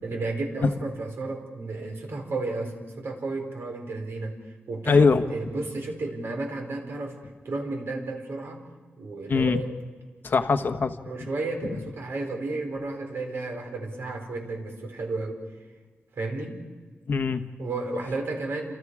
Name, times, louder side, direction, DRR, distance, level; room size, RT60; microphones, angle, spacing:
voice 1, 0.0-4.4 4.7-7.2 7.4-8.6 9.0-9.7 11.0-15.4 16.1-16.6 17.6-18.7, right 3 dB, 65° right, 2 dB, 4.9 m, -32 dB
voice 2, 4.9-5.2 9.3-9.6 10.2-11.3 17.1-17.4, left 4 dB, 50° left, 8 dB, 1.2 m, -22 dB
30.0 x 27.5 x 4.9 m, 1.4 s
wide cardioid pair, 135°, 4 cm